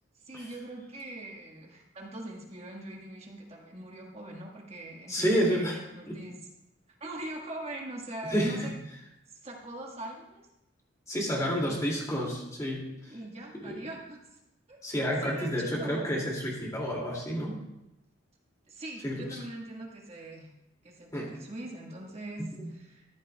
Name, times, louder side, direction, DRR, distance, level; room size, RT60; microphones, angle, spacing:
voice 1, 0.2-6.4 7.0-8.7 9.3-10.4 11.3-11.8 13.1-14.4 14.7-14.8 15.2-16.2 18.7-20.5 20.8-23.1, right 1 dB, 35° right, 0 dB, 1.5 m, -42 dB
voice 2, 5.1-5.8 6.1-6.2 8.3-8.6 11.1-13.1 13.6-13.8 14.8-17.6 19.0-19.4 21.1-21.3 22.4-22.7, equal, 15° left, -3 dB, 2.3 m, -30 dB
13.5 x 11.0 x 2.3 m, 0.91 s
head